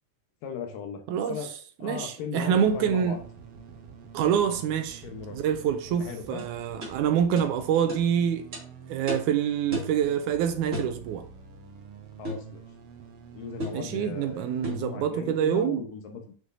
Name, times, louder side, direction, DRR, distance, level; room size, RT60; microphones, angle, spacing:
voice 1, 0.4-1.5 1.8-3.2 5.0-5.4 5.9-6.4 12.2-12.6 13.3-16.3, left 6 dB, 85° left, 2.8 m, -38 dB
voice 2, 1.1-3.2 4.1-5.0 5.3-8.5 8.9-11.3 13.7-15.8, right 8 dB, 80° right, 1.9 m, -26 dB
sound 1, 2.5-15.0, right 6 dB, 65° right, 1.5 m, -47 dB
sound 2, 6.4-6.5 6.8-7.0 7.4-7.5 7.9-8.0 8.5-8.6 9.1-9.3 9.7-10.0 10.7-11.0 12.2-12.5 13.6-13.8 14.6-14.9, equal, 25° right, 2.2 m, -34 dB
7.7 x 6.2 x 2.7 m
omnidirectional pair, 3.8 m